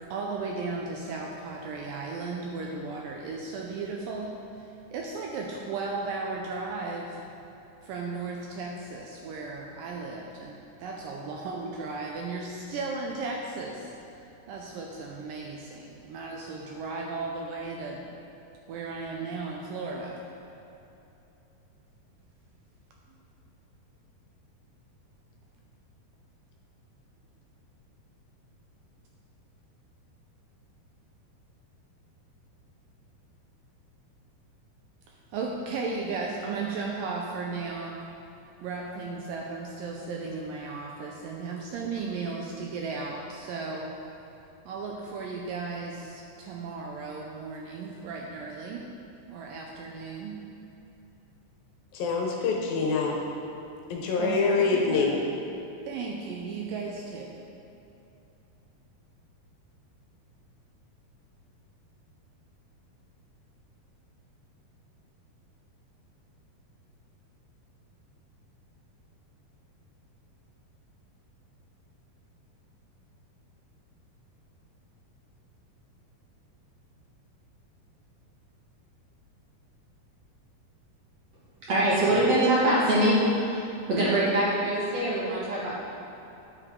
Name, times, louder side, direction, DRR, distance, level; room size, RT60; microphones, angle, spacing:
voice 1, 0.1-4.4 4.9-7.2 7.8-13.9 14.5-18.1 18.7-20.2 35.3-38.0 38.6-43.9 44.7-48.9 49.3-50.4 54.0-55.2 55.8-57.3, right 4 dB, 80° right, -1 dB, 2.1 m, -35 dB
voice 2, 51.9-53.2 53.9-55.2, left 4 dB, 75° left, 0 dB, 2.5 m, -25 dB
voice 3, 81.7-83.6 83.9-85.8, right 1 dB, 55° right, -8 dB, 2.0 m, -23 dB
10.0 x 6.6 x 3.7 m, 2.8 s
omnidirectional pair, 4.4 m